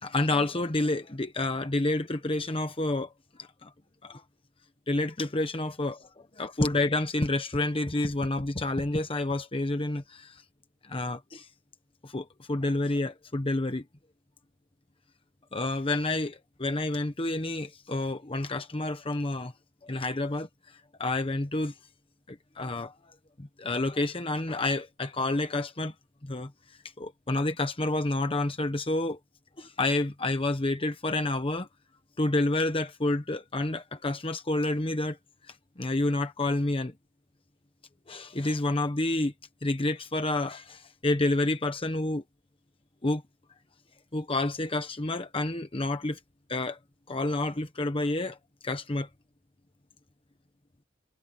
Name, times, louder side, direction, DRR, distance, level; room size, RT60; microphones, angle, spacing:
voice 1, 0.0-3.1 3.4-3.7 4.0-4.2 4.9-6.1 6.4-10.4 10.8-11.5 12.0-13.8 15.5-19.5 19.8-21.7 22.3-25.9 26.2-26.5 27.0-29.2 29.6-31.7 32.2-35.2 35.4-36.9 38.1-39.3 39.6-42.2 43.0-43.2 44.1-46.2 46.5-46.8 47.1-48.4 48.6-49.1, left 2 dB, 30° left, 1.1 m, -29 dB
head